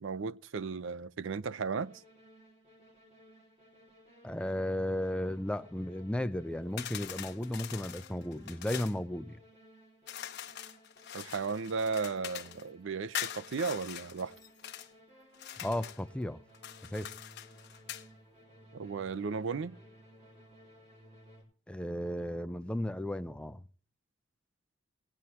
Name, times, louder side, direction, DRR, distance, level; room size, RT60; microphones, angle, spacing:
voice 1, 0.0-1.9 11.1-14.3 18.7-19.7, right 5 dB, 70° right, 0.5 m, -35 dB
sound 1, 1.7-21.4, equal, 35° right, 4.0 m, -59 dB
voice 2, 4.2-9.4 15.6-16.4 16.9-17.1 21.7-23.6, left 1 dB, 5° left, 0.5 m, -34 dB
sound 2, 6.8-9.0 10.1-12.6 13.1-14.9 15.3-16.0 16.5-18.1, left 11 dB, 60° left, 0.9 m, -43 dB
18.0 x 9.7 x 2.9 m
head